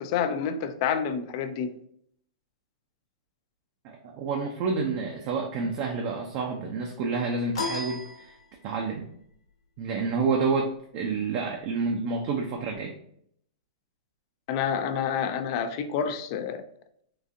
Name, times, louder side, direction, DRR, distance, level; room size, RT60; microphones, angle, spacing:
voice 1, 0.0-1.7 14.5-16.6, left 7 dB, 45° left, 0.4 m, -28 dB
voice 2, 3.8-8.3 8.6-9.1 9.8-13.0, right 4 dB, 45° right, 0.5 m, -29 dB
sound 1, 7.5-8.9, left 3 dB, 75° left, 0.9 m, -34 dB
3.8 x 2.4 x 2.6 m
hypercardioid pair, 120°, 3 cm